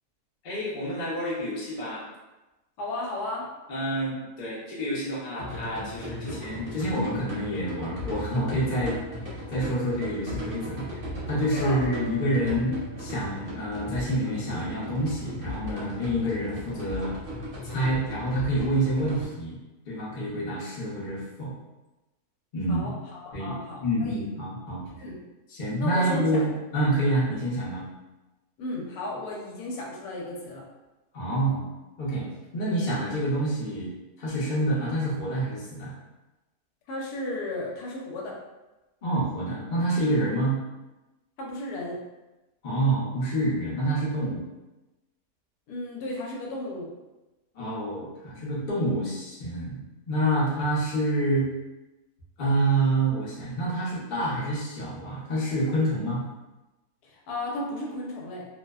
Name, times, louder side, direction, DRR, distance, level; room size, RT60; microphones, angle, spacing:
voice 1, 0.4-2.1 3.7-9.0 9.3-10.9 11.3-17.2 17.6-19.6 19.9-21.5 22.5-22.9 23.3-23.5 23.8-25.0 25.5-27.8 31.1-31.7 32.0-32.3 32.5-33.9 34.2-35.9 39.0-40.6 42.6-44.4 47.5-51.5 52.4-56.2, right 1 dB, 50° left, -6 dB, 0.6 m, -27 dB
voice 2, 2.8-3.5 11.6-11.8 22.7-24.3 25.0-25.2 25.8-26.5 28.6-30.6 36.9-38.4 41.4-42.0 45.7-46.9 57.0-58.5, left 1 dB, 80° left, -2 dB, 1.1 m, -34 dB
sound 1, 5.4-19.2, left 1 dB, 50° right, 0.8 m, -37 dB
sound 2, 11.5-14.3, right 2 dB, 85° right, 1.1 m, -43 dB
2.6 x 2.1 x 2.2 m, 1.1 s
omnidirectional pair, 1.6 m